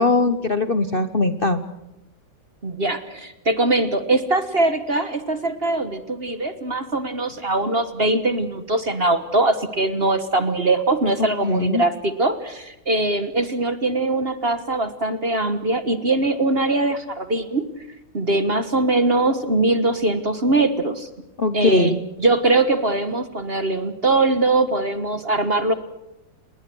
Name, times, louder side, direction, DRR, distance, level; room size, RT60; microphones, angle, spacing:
voice 1, 0.0-1.6 11.2-11.8 21.4-21.9, left 3 dB, 35° left, 10 dB, 1.0 m, -20 dB
voice 2, 2.6-17.6 18.1-21.1 21.5-25.7, right 2 dB, 35° right, 11 dB, 1.4 m, -21 dB
30.0 x 20.5 x 6.3 m, 0.91 s
omnidirectional pair, 2.1 m